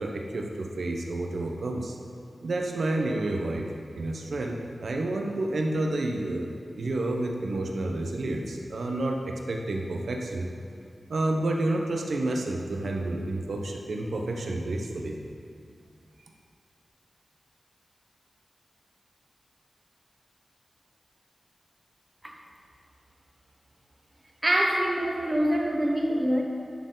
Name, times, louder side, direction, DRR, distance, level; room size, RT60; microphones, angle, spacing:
voice 1, 0.0-1.9 2.4-6.5 6.8-10.5 11.1-15.2, right 2 dB, 80° right, 1 dB, 1.0 m, -30 dB
voice 2, 24.4-26.4, equal, 25° right, 0 dB, 1.2 m, -25 dB
10.5 x 6.6 x 4.0 m, 2.4 s
wide cardioid pair, 110°, 0 cm